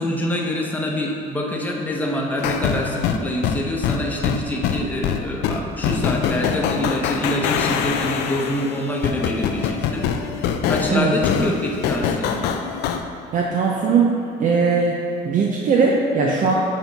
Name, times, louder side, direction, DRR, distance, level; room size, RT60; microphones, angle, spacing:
voice 1, 0.0-10.1 10.4-12.4, left 1 dB, 10° left, -2 dB, 0.9 m, -26 dB
sound 1, 2.4-13.0, left 7 dB, 80° left, 0.5 m, -24 dB
voice 2, 13.3-15.0 15.2-16.5, right 5 dB, 50° right, -1 dB, 0.6 m, -19 dB
7.4 x 4.5 x 4.0 m, 2.6 s
cardioid pair, 110°, 17 cm